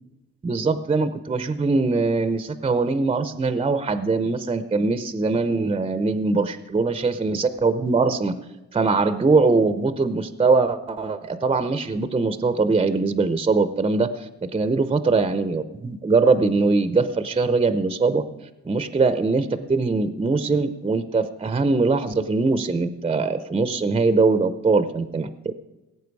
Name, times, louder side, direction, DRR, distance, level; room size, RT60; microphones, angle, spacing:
voice 1, 0.4-8.3 8.7-18.2 18.7-25.5, right 3 dB, 20° right, 12 dB, 0.7 m, -22 dB
17.5 x 8.0 x 4.7 m, 1.0 s
cardioid pair, 90°, 30 cm